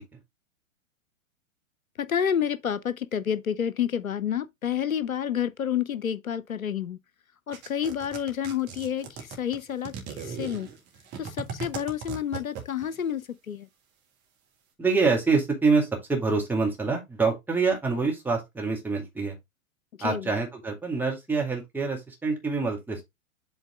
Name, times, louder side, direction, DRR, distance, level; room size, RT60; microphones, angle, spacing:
voice 1, 2.0-7.0 7.5-10.7 11.2-13.7 20.0-20.3, left 9 dB, 80° left, 0.6 m, -29 dB
sound 1, 7.5-13.0, right 6 dB, 25° right, 1.7 m, -38 dB
voice 2, 14.8-19.4 20.0-23.0, right 4 dB, 5° right, 1.9 m, -26 dB
7.9 x 3.8 x 3.6 m
figure-of-eight pair, 105°, 41 cm